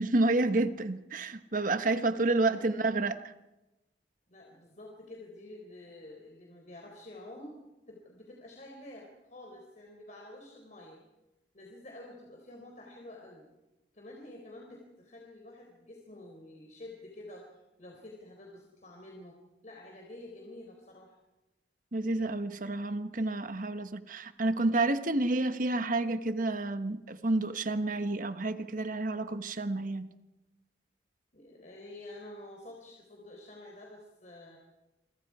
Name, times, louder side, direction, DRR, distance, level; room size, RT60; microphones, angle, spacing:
voice 1, 0.0-3.3 21.9-30.1, right 2 dB, 50° right, 10 dB, 1.2 m, -29 dB
voice 2, 2.5-2.8 4.3-7.6 7.9-11.0 11.5-13.5 13.9-19.3 19.6-21.2 31.3-34.6, left 1 dB, 40° left, 0 dB, 4.0 m, -49 dB
27.5 x 25.0 x 4.9 m, 1.0 s
head